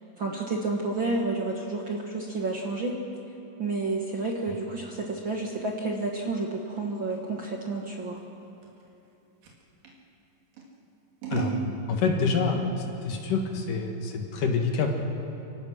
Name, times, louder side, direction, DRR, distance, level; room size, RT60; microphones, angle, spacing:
voice 1, 0.2-3.0 3.6-8.2, right 3 dB, 50° right, 0 dB, 1.6 m, -30 dB
Scissors, 3.8-10.0 10.5-11.7, right 5 dB, 75° right, 4.0 m, -39 dB
voice 2, 11.9-12.6 13.0-14.9, left 5 dB, 70° left, 3 dB, 3.3 m, -26 dB
29.0 x 17.0 x 6.3 m, 2.9 s
omnidirectional pair, 4.0 m